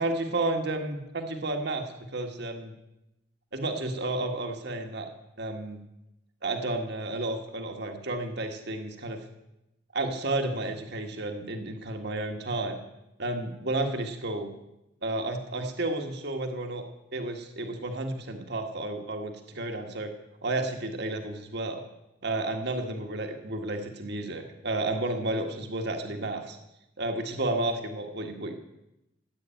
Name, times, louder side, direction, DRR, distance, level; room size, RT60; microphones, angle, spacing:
voice 1, 0.0-2.7 3.5-5.1 5.4-5.8 6.4-9.2 9.9-12.8 13.2-14.5 15.0-16.8 17.1-20.1 20.4-21.8 22.2-26.6 27.0-28.5, right 2 dB, 60° right, 4 dB, 1.6 m, -31 dB
15.0 x 8.5 x 9.1 m, 0.91 s
head